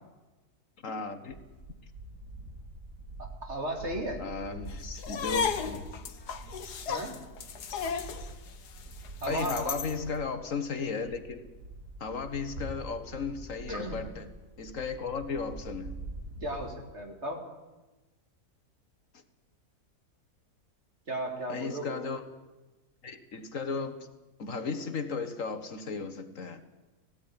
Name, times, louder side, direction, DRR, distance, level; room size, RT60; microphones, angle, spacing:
voice 1, 0.8-1.4 4.2-5.9 9.3-11.5 12.0-14.3 14.6-16.0 21.5-22.2 23.0-24.1 24.4-26.6, left 5 dB, 55° left, 9 dB, 1.8 m, -35 dB
sound 1, 1.3-10.2 10.6-16.8, right 1 dB, 70° right, 5.4 m, -45 dB
voice 2, 3.2-4.2 6.9-7.2 9.2-9.9 13.7-14.1 16.4-17.5 21.1-22.1, right 1 dB, 40° right, 2 dB, 3.1 m, -35 dB
sound 2, 5.0-10.0, left 6 dB, 75° left, 1.7 m, -34 dB
18.0 x 16.0 x 9.8 m, 1.1 s
omnidirectional pair, 1.7 m